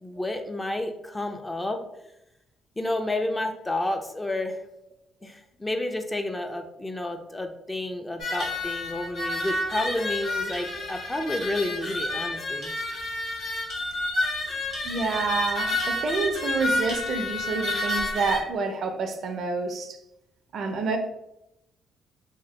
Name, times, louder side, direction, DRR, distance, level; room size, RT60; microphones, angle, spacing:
voice 1, 0.0-1.8 2.8-4.6 5.2-12.7, left 1 dB, 15° left, 5 dB, 0.4 m, -30 dB
sound 1, 8.2-18.4, left 2 dB, 65° left, 1.2 m, -30 dB
voice 2, 14.8-20.0 20.5-21.0, right 4 dB, 65° right, 7 dB, 0.4 m, -28 dB
2.8 x 2.2 x 3.2 m, 0.85 s
cardioid pair, 90°, 0 cm